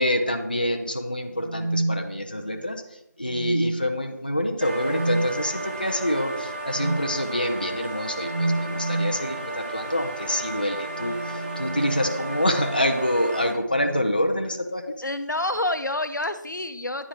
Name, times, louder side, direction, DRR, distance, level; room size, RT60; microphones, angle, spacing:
voice 1, 0.0-2.8 3.2-14.9, left 1 dB, 30° left, 5 dB, 0.4 m, -26 dB
sound 1, 1.3-2.7 3.3-4.1 4.9-5.3 6.8-7.1 8.3-9.3 10.8-12.6 13.7-14.2 15.4-15.7, right 2 dB, 50° right, 0.5 m, -30 dB
sound 2, 4.6-13.5, right 2 dB, 35° right, 1.4 m, -34 dB
voice 2, 15.0-17.1, left 1 dB, 90° left, 10 dB, 0.6 m, -28 dB
9.7 x 3.6 x 2.8 m, 0.84 s
figure-of-eight pair, 170°, 10 cm